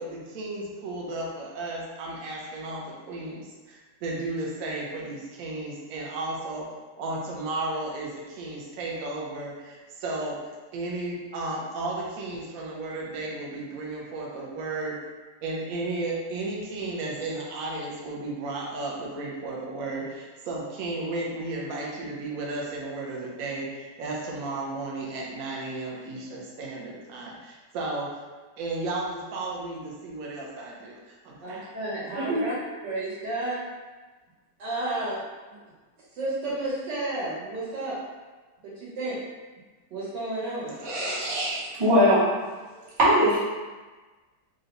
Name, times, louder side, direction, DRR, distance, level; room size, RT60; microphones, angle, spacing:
voice 1, 0.0-6.6 7.0-10.4 10.7-15.0 15.4-28.1 28.6-31.7 32.2-32.8, right 2 dB, 65° right, -3 dB, 1.0 m, -34 dB
voice 2, 31.4-32.5 32.8-33.6 34.6-35.2 35.5-35.6 36.1-38.0 38.6-39.2 39.9-40.7, right 2 dB, 80° right, -8 dB, 1.9 m, -31 dB
voice 3, 40.8-42.3 43.0-43.4, equal, 30° right, -7 dB, 0.5 m, -21 dB
3.8 x 2.2 x 3.9 m, 1.3 s
omnidirectional pair, 1.9 m